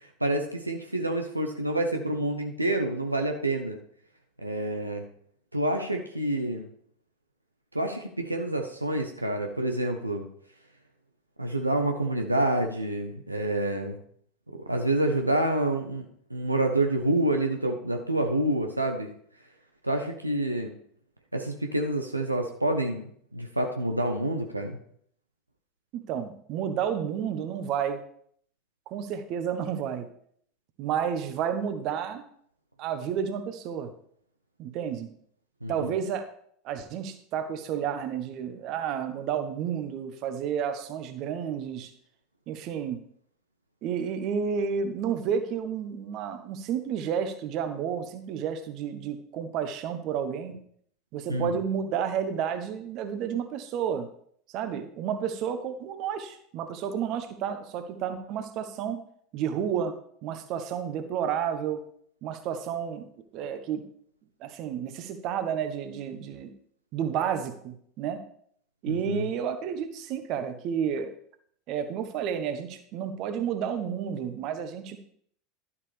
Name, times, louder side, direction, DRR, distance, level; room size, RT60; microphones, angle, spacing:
voice 1, 0.2-3.8 4.4-5.0 5.5-6.7 7.7-10.2 11.4-14.0 14.7-19.1 19.8-20.7 21.3-23.0 23.3-24.8 35.6-35.9 51.3-51.6 68.9-69.3, right 1 dB, 90° right, 4 dB, 0.9 m, -28 dB
voice 2, 25.9-28.0 28.9-30.1 30.8-32.2 32.8-33.9 34.6-35.1 35.7-36.3 36.6-41.9 42.5-43.0 43.8-50.5 51.1-54.1 54.5-59.0 59.3-59.9 60.2-61.8 62.2-63.1 63.3-63.8 64.4-66.5 66.9-68.2 68.8-71.1 71.7-75.0, right 8 dB, 45° right, 8 dB, 1.1 m, -31 dB
12.0 x 7.2 x 3.4 m, 0.63 s
figure-of-eight pair, 75°, 0 cm